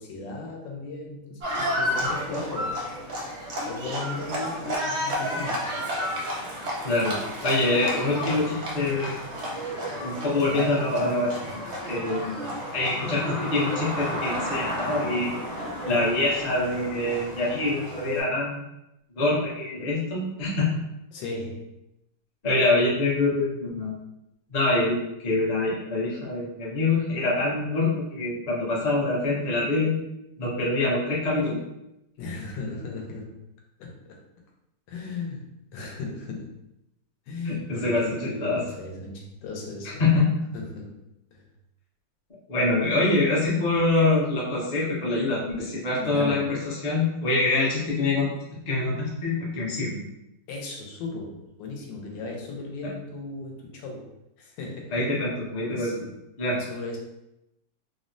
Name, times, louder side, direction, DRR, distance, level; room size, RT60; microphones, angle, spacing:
voice 1, 0.0-2.9 3.7-5.7 8.3-8.5 21.1-21.7 32.2-33.4 33.8-34.2 34.9-36.6 37.3-40.1 40.5-41.0 41.3-41.4 46.0-46.6 50.5-54.1 54.4-55.0 55.7-56.1 56.5-57.0, left 3 dB, 85° left, 0 dB, 1.3 m, -36 dB
Livestock farm animals working animals, 1.4-18.2, equal, 65° right, 0.7 m, -32 dB
voice 2, 6.8-9.2 10.0-11.6 11.9-12.4 12.7-15.4 15.8-18.7 19.2-20.7 22.4-23.9 24.5-30.0 30.4-31.6 35.8-35.9 37.4-37.5 37.8-38.6 40.0-40.2 42.5-48.3 48.7-50.0 54.9-55.9 56.4-56.6, left 2 dB, 55° left, -6 dB, 0.4 m, -25 dB
3.3 x 2.1 x 2.5 m, 0.87 s
omnidirectional pair, 2.0 m